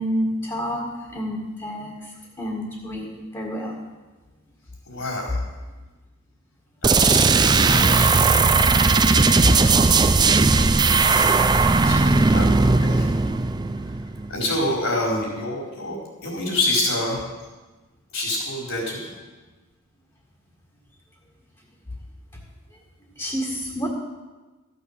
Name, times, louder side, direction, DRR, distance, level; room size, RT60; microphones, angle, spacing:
voice 1, 0.0-2.1 2.4-3.1 3.3-3.8 9.4-9.5 23.2-23.9, equal, 20° left, -2 dB, 1.8 m, -28 dB
voice 2, 4.9-5.4 6.8-8.1 8.9-10.1 11.1-11.3 11.8-13.1 14.3-16.0 16.2-17.2 18.1-19.1, left 1 dB, 60° left, -2 dB, 4.3 m, -28 dB
sound 1, 6.8-14.4, right 4 dB, 20° right, 0.4 m, -17 dB
14.5 x 6.8 x 7.3 m, 1.2 s
head